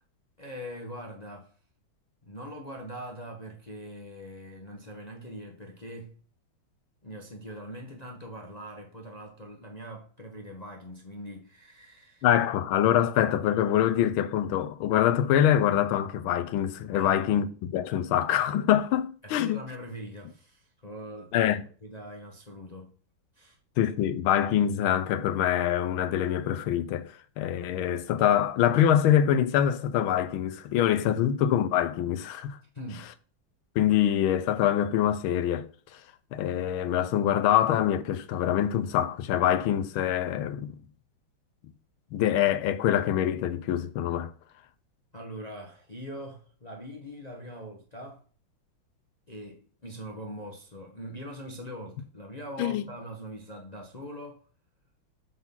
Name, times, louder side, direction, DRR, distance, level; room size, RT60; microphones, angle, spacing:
voice 1, 0.4-1.6 2.2-6.2 7.0-12.3 16.9-17.3 19.2-21.5 21.8-22.9 23.3-23.6 31.0-31.3 32.7-33.1 45.1-48.2 49.3-54.4, equal, 30° left, 0.8 m, -42 dB
voice 2, 12.2-19.6 21.3-21.6 23.8-32.6 33.7-35.7 36.3-40.8 42.1-44.3 52.6-52.8, left 10 dB, 90° left, 1.5 m, -25 dB
7.5 x 4.0 x 5.5 m
omnidirectional pair, 2.2 m